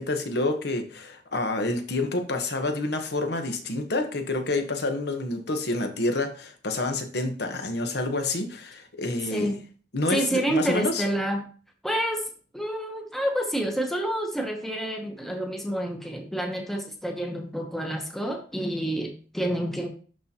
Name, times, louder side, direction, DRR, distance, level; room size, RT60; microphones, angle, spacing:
voice 1, 0.0-9.5 9.9-11.0, left 2 dB, 65° left, 6 dB, 1.1 m, -28 dB
voice 2, 10.1-11.4 11.8-12.2 12.5-19.9, right 1 dB, ahead, 2 dB, 0.9 m, -28 dB
11.5 x 4.1 x 2.9 m, 0.40 s
head